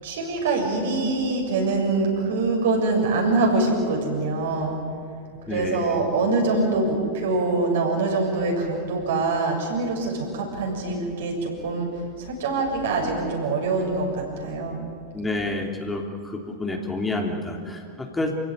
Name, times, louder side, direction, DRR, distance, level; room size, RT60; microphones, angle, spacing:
voice 1, 0.0-4.8 5.5-11.9 12.2-14.8, right 3 dB, 70° right, 0 dB, 7.3 m, -24 dB
voice 2, 5.5-6.0 15.1-18.4, left 2 dB, 10° left, 2 dB, 3.2 m, -29 dB
28.5 x 16.5 x 9.7 m, 2.3 s
figure-of-eight pair, 90°, 0 cm